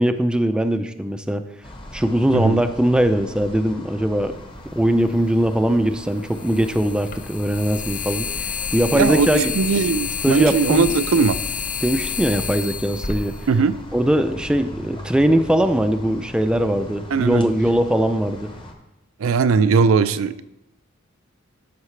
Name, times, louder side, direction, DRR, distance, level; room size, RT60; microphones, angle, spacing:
voice 1, 0.0-1.5 1.9-4.4 4.7-9.5 10.2-10.9 11.8-13.4 13.9-18.5, right 1 dB, 5° right, 8 dB, 0.4 m, -20 dB
sound 1, 1.6-18.7, left 1 dB, 25° left, 0.9 m, -40 dB
voice 2, 2.3-2.6 8.9-11.4 13.5-13.8 17.1-17.5 19.2-20.4, right 5 dB, 80° right, 13 dB, 0.4 m, -19 dB
sound 2, 4.8-4.9 6.3-14.2, left 6 dB, 40° left, 0.6 m, -29 dB
13.0 x 5.7 x 3.2 m, 0.88 s
head